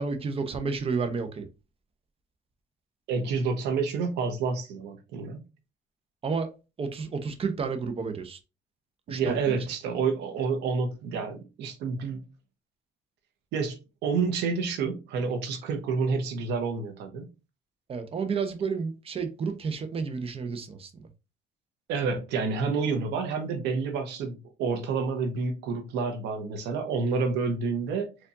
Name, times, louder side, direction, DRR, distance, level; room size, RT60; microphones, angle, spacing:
voice 1, 0.0-1.5 6.2-6.5 6.8-8.4 9.1-9.6 17.9-21.1, right 5 dB, 35° right, 0.8 m, -31 dB
voice 2, 3.1-5.4 9.1-12.2 13.5-17.3 21.9-28.1, right 5 dB, 85° right, 1.0 m, -29 dB
4.5 x 2.5 x 2.6 m
cardioid pair, 110°, 17 cm